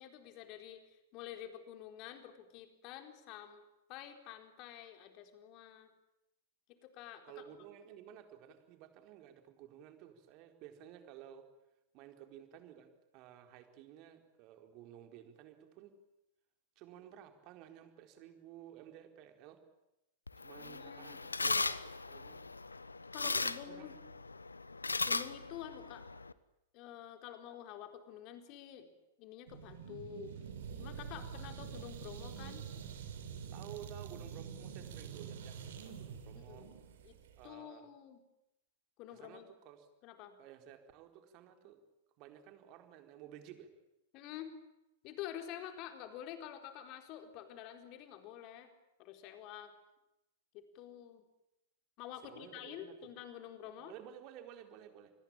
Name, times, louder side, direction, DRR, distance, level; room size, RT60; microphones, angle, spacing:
voice 1, 0.0-3.6 3.9-5.9 6.8-7.4 20.6-21.2 23.1-23.9 25.1-26.1 26.7-28.9 29.2-30.3 30.8-32.7 36.3-36.8 37.0-37.2 37.4-38.2 39.0-39.4 40.0-40.4 44.1-44.5 45.0-48.7 49.0-49.7 50.5-51.2 52.0-53.9, left 10 dB, 40° left, 6 dB, 4.2 m, -48 dB
voice 2, 7.2-11.5 11.9-15.9 16.8-19.6 20.4-22.4 23.3-23.9 33.5-36.7 37.4-37.9 39.1-39.9 40.4-41.8 42.2-43.7 52.2-53.0 53.8-55.1, right 10 dB, 40° right, 6 dB, 4.3 m, -54 dB
sound 1, 20.3-26.3, left 3 dB, 85° left, 1.1 m, -38 dB
sound 2, 29.5-37.5, right 7 dB, 60° right, 4.5 m, -46 dB
27.5 x 21.0 x 8.9 m, 0.91 s
figure-of-eight pair, 100°, 0 cm